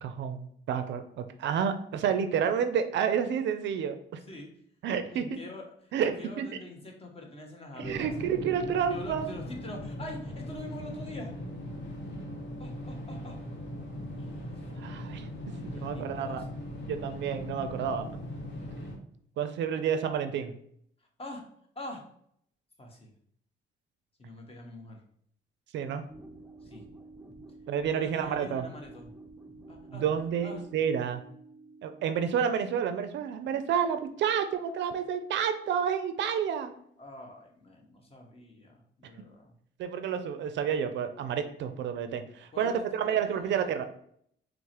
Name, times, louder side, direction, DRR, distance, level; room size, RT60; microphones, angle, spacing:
voice 1, 0.0-4.2 4.8-5.4 5.9-6.1 6.4-6.5 7.8-9.3 14.8-15.3 15.6-16.4 16.8-18.1 19.4-20.5 25.7-26.0 27.7-28.7 29.9-31.2 31.8-36.7 39.8-43.8, right 7 dB, 65° right, 9 dB, 0.4 m, -30 dB
voice 2, 5.1-8.1 8.9-11.3 12.6-13.4 14.2-14.4 15.6-16.5 21.2-21.4 21.7-22.0 22.8-23.1 24.2-25.0 26.6-26.8 27.9-29.1 29.7-30.0 30.4-30.6 37.0-39.5 42.5-43.7, left 1 dB, 30° left, 2 dB, 0.9 m, -45 dB
sound 1, 7.8-19.0, equal, 60° left, 1.0 m, -39 dB
sound 2, 26.1-32.7, right 2 dB, 5° right, 0.5 m, -50 dB
4.6 x 2.0 x 2.8 m, 0.66 s
cardioid pair, 90°, 20 cm